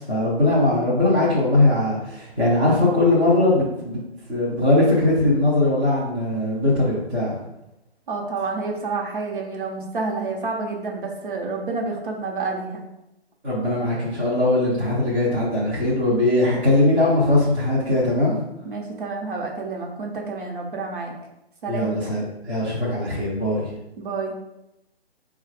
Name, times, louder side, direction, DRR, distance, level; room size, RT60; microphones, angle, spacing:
voice 1, 0.0-4.0 4.3-7.3 13.4-18.4 21.7-23.7, left 2 dB, 10° right, -9 dB, 0.6 m, -20 dB
voice 2, 8.1-12.9 18.6-21.1 21.6-22.0 24.0-24.4, right 3 dB, 50° right, 0 dB, 1.0 m, -29 dB
4.4 x 2.4 x 4.7 m, 0.89 s
hypercardioid pair, 150°, 32 cm